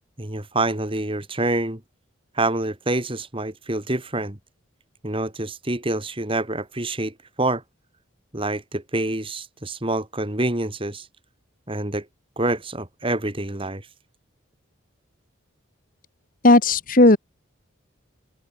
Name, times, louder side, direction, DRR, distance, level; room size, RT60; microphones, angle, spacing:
voice 1, 0.2-1.8 2.3-4.4 5.0-7.6 8.3-11.1 11.7-12.1 12.4-13.8, right 2 dB, 25° right, 2.2 m, -26 dB
voice 2, 16.4-17.2, left 2 dB, 45° left, 1.7 m, -14 dB
open air
head